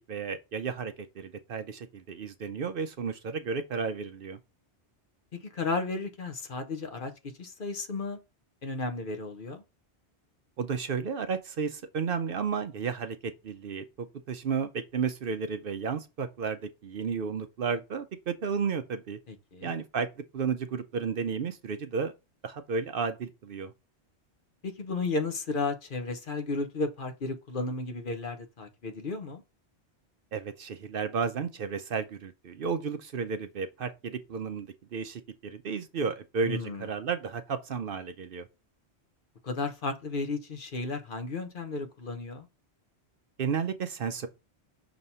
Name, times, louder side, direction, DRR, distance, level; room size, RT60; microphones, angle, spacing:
voice 1, 0.1-4.4 10.6-19.2 19.6-20.1 20.3-22.1 22.4-23.7 30.3-38.5 43.4-44.3, right 5 dB, 60° right, 0.7 m, -33 dB
voice 2, 5.4-7.1 7.4-8.2 8.6-9.6 19.3-19.7 24.6-29.4 36.4-36.9 39.4-42.5, left 3 dB, 50° left, 1.0 m, -33 dB
6.1 x 2.9 x 5.4 m
omnidirectional pair, 1.1 m